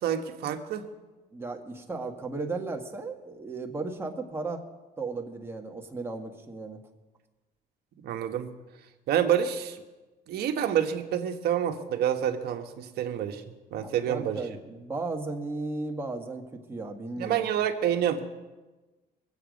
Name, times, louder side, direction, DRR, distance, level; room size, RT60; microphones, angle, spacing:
voice 1, 0.0-0.9 8.0-8.5 9.1-9.8 10.3-13.4 13.7-14.4 17.2-18.2, right 9 dB, 70° right, 5 dB, 1.4 m, -28 dB
voice 2, 1.3-4.6 5.0-6.8 13.7-17.5, right 3 dB, 15° right, 1 dB, 1.7 m, -35 dB
22.5 x 8.2 x 5.2 m, 1.2 s
cardioid pair, 110°, 17 cm